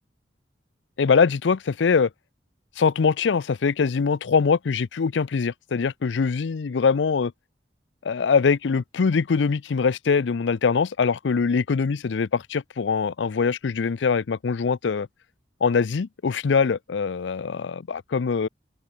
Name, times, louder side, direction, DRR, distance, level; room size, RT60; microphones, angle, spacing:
voice 1, 1.0-2.1 2.8-7.3 8.0-15.1 15.6-18.5, left 5 dB, 85° left, 0.5 m, -23 dB
open air
head